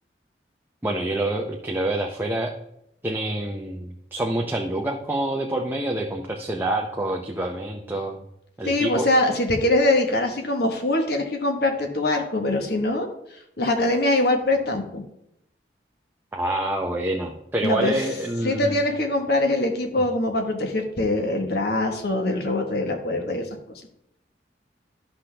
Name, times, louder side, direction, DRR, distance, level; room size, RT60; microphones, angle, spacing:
voice 1, 0.8-2.5 3.0-8.2 8.6-9.1 16.3-18.8, right 1 dB, 10° right, 1 dB, 0.6 m, -27 dB
voice 2, 8.6-13.1 13.6-15.0 17.6-17.9 18.4-23.4, left 2 dB, 60° left, 4 dB, 1.3 m, -23 dB
12.0 x 5.8 x 3.3 m, 0.77 s
head